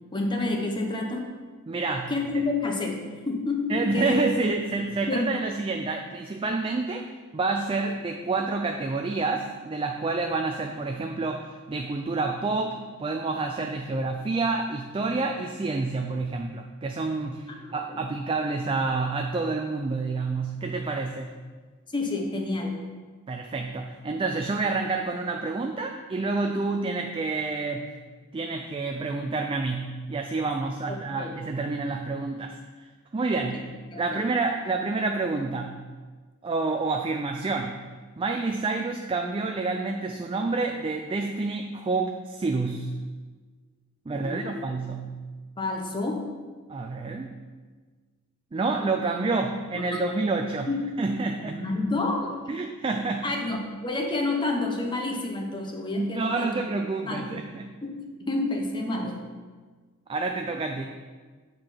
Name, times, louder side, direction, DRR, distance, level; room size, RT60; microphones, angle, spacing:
voice 1, 0.1-1.2 2.1-4.2 4.8-5.3 17.6-18.0 21.9-22.8 31.1-31.4 33.3-33.6 33.9-34.2 44.1-44.6 45.6-46.3 49.9-50.0 50.7-50.9 51.4-52.4 53.2-56.5 57.1-57.3 57.8-59.2, left 2 dB, 20° left, 1 dB, 0.8 m, -29 dB
voice 2, 1.7-2.1 3.7-21.4 23.3-27.9 28.3-32.6 33.1-33.6 34.0-35.9 36.4-37.8 38.2-42.9 44.1-45.2 46.7-47.4 48.5-50.7 51.0-51.6 52.5-53.3 55.9-57.8 60.1-60.9, right 3 dB, 25° right, 4 dB, 0.3 m, -28 dB
7.6 x 4.5 x 5.7 m, 1.4 s
head